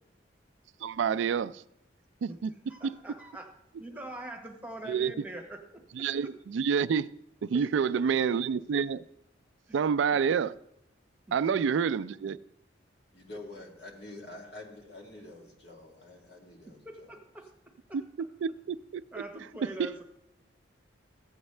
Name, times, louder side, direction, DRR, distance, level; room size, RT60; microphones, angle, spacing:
voice 1, 0.8-1.6 2.2-2.5 2.8-2.9 4.9-5.1 5.9-7.1 7.4-9.0 9.7-10.5 11.3-12.4 18.4-19.0 19.8-19.9, right 6 dB, 75° right, 0.3 m, -28 dB
voice 2, 2.7-3.5 3.8-5.6 7.5-8.0 9.7-9.8 11.7-11.8 16.7-17.5 17.9-18.0 19.1-20.0, right 1 dB, 10° right, 1.1 m, -43 dB
voice 3, 13.1-17.2, left 2 dB, 60° left, 2.4 m, -47 dB
15.0 x 8.0 x 3.2 m
head